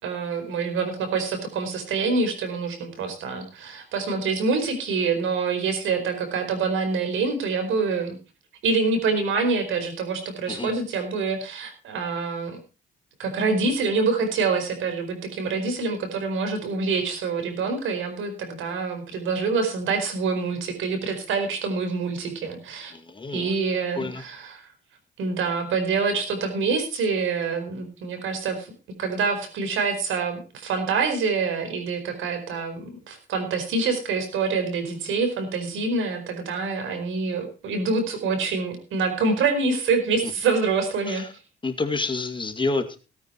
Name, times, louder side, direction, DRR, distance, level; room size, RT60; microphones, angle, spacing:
voice 1, 0.0-8.2 8.6-12.6 13.2-22.9 23.3-24.7 25.2-28.7 29.0-41.3, right 4 dB, 80° right, 7 dB, 4.6 m, -26 dB
voice 2, 22.9-23.5 23.9-24.2 40.2-40.3 41.1-41.3 41.6-43.0, left 3 dB, 25° left, 6 dB, 2.2 m, -28 dB
17.5 x 9.4 x 4.6 m, 0.33 s
cardioid pair, 90°, 20 cm